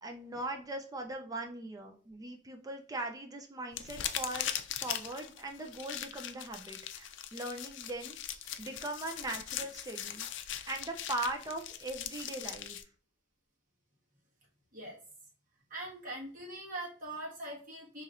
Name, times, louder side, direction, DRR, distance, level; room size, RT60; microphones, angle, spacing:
voice 1, 0.0-4.5 4.8-10.3 10.7-12.8, right 2 dB, 20° right, 4 dB, 0.4 m, -40 dB
sound 1, 3.7-12.8, left 10 dB, 70° left, 0.4 m, -40 dB
voice 2, 15.7-18.0, right 1 dB, 50° right, -5 dB, 1.6 m, -42 dB
4.3 x 3.0 x 2.4 m, 0.43 s
head